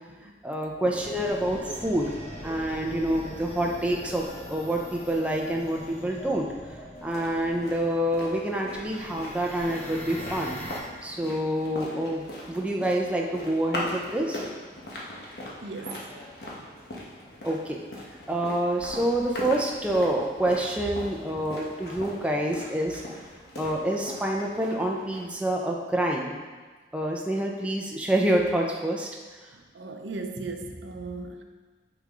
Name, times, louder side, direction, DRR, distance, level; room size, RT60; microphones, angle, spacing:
voice 1, 0.4-2.1 2.4-6.5 7.0-10.5 11.0-14.4 17.4-17.8 18.3-23.0 23.6-26.4 26.9-29.1, right 1 dB, 5° right, -1 dB, 0.6 m, -27 dB
sound 1, 0.9-10.8, equal, 40° left, 1.1 m, -41 dB
sound 2, 6.9-25.5, left 1 dB, 60° left, 1.4 m, -40 dB
voice 2, 15.6-16.0 29.7-31.4, right 3 dB, 90° right, 5 dB, 0.7 m, -36 dB
8.7 x 5.0 x 3.8 m, 1.4 s
head